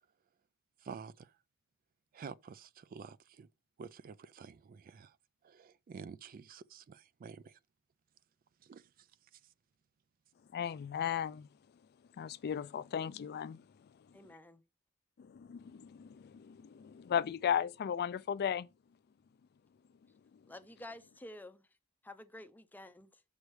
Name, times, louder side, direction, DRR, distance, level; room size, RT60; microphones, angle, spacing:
voice 1, 0.8-1.3 2.1-3.5 3.8-5.2 5.4-7.6 8.6-9.1, right 6 dB, 40° right, 0.3 m, -49 dB
voice 2, 10.5-11.5 12.2-13.6 15.2-18.7, left 8 dB, 50° left, 0.3 m, -36 dB
voice 3, 14.1-14.6 20.5-21.7 22.0-23.2, left 1 dB, 10° left, 0.6 m, -50 dB
6.4 x 4.8 x 4.6 m
head